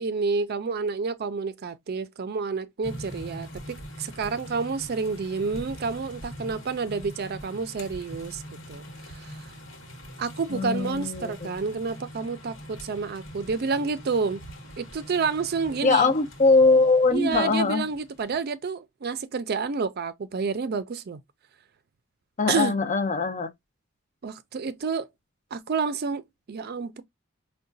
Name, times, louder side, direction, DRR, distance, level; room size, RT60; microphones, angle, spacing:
voice 1, 0.0-8.4 8.7-9.5 10.2-14.4 14.8-16.1 17.1-21.2 22.5-22.7 24.2-25.1 25.5-27.0, right 5 dB, 50° right, 0.4 m, -29 dB
sound 1, 2.8-18.4, equal, 70° left, 1.1 m, -43 dB
voice 2, 10.5-11.5 15.8-17.8 22.4-23.5, left 3 dB, 35° left, 0.5 m, -21 dB
4.7 x 2.2 x 2.5 m
head